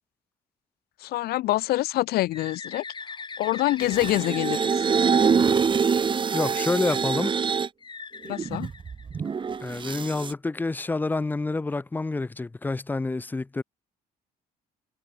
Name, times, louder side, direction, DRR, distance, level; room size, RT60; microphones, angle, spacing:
voice 1, 1.0-2.8 3.4-4.7 8.2-8.7, left 16 dB, 65° left, 0.5 m, -25 dB
Bird, 2.3-6.1 7.8-9.6, left 5 dB, 25° left, 4.0 m, -41 dB
sound 1, 3.8-7.7 8.3-10.3, right 6 dB, 30° right, 1.1 m, -25 dB
voice 2, 6.3-7.4 9.6-13.6, left 3 dB, 10° left, 0.5 m, -28 dB
cardioid pair, 110°, 17 cm